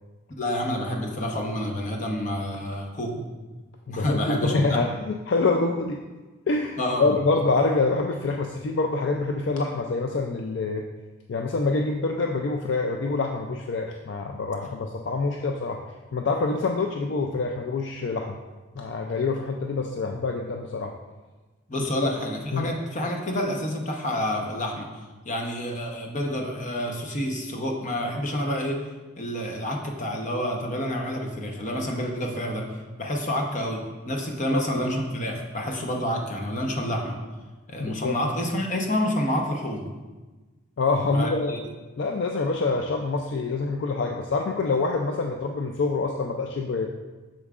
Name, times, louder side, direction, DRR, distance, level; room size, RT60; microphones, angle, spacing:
voice 1, 0.4-3.2 3.9-4.7 6.8-7.0 21.7-24.9 25.2-28.8 29.2-32.6 33.0-33.8 34.1-37.2 37.7-39.9 41.1-41.6, equal, 35° left, 1 dB, 0.9 m, -28 dB
voice 2, 3.9-6.0 6.5-10.8 11.3-15.8 16.1-18.4 18.7-20.9 21.9-22.2 22.5-22.8 34.5-34.6 37.8-38.2 40.8-41.5 42.0-46.9, left 3 dB, 60° left, 3 dB, 0.4 m, -26 dB
8.2 x 6.3 x 2.4 m, 1.2 s
head